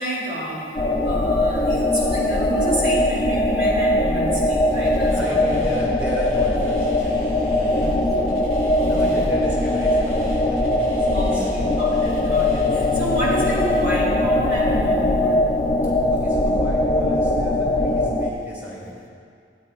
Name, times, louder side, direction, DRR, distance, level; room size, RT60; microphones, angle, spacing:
voice 1, 0.0-5.6 7.7-8.2 8.8-9.3 11.1-15.4, equal, 75° right, -5 dB, 2.7 m, -29 dB
sound 1, 0.8-18.3, left 1 dB, 25° left, 0.6 m, -21 dB
sound 2, 4.7-13.8, left 1 dB, 55° right, 2.2 m, -39 dB
voice 2, 5.1-7.9 8.8-11.5 12.0-12.2 16.1-19.1, right 1 dB, 10° right, -7 dB, 2.5 m, -33 dB
sound 3, 12.5-18.1, left 5 dB, 75° left, 0.4 m, -34 dB
15.5 x 8.8 x 2.5 m, 2.2 s
head